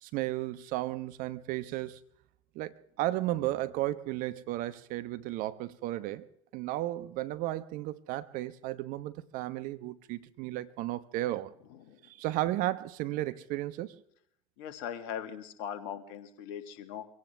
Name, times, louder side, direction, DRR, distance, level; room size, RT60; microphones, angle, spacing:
voice 1, 0.0-2.0 2.5-6.3 6.5-11.5 12.0-14.0, right 16 dB, 50° right, 1.1 m, -34 dB
voice 2, 14.6-17.1, left 9 dB, 55° left, 2.1 m, -40 dB
24.5 x 17.0 x 3.4 m
figure-of-eight pair, 80°, 19 cm